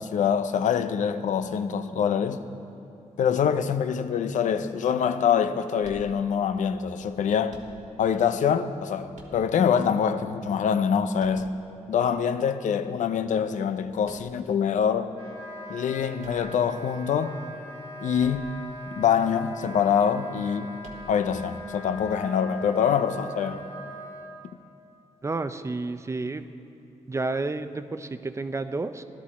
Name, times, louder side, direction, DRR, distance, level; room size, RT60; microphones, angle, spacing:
voice 1, 0.0-2.5 3.2-7.6 8.0-11.5 11.9-15.1 15.7-17.3 18.0-18.5 19.0-20.7 21.1-23.6, left 7 dB, 85° left, 0.5 m, -25 dB
sound 1, 5.8-6.6 7.5-8.2 9.1-9.9 11.2-12.0 14.0-14.6 16.2-17.1 18.2-18.8 19.0-19.1 20.8-21.4, right 3 dB, 75° right, 1.4 m, -49 dB
Wind instrument woodwind instrument, 15.1-24.4, equal, 35° left, 2.2 m, -41 dB
voice 2, 25.2-26.5 27.1-29.0, right 3 dB, 25° right, 0.5 m, -30 dB
14.5 x 12.0 x 4.2 m
cardioid pair, 100°, 13 cm